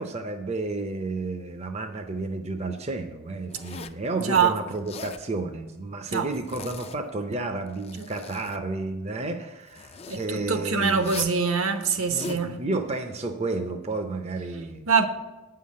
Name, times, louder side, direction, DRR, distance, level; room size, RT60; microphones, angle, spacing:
voice 1, 0.0-11.2 12.1-14.9, right 3 dB, 30° right, 0.5 m, -31 dB
Zipper (clothing), 3.5-4.1 4.7-5.2 6.3-7.2 7.6-8.6 9.7-10.3 11.0-11.4 11.9-12.4, left 4 dB, 25° left, 0.3 m, -41 dB
voice 2, 4.2-4.5 6.1-6.3 8.0-8.1 10.1-12.6 14.9-15.1, right 5 dB, 70° right, 0.9 m, -24 dB
9.0 x 5.7 x 7.5 m
head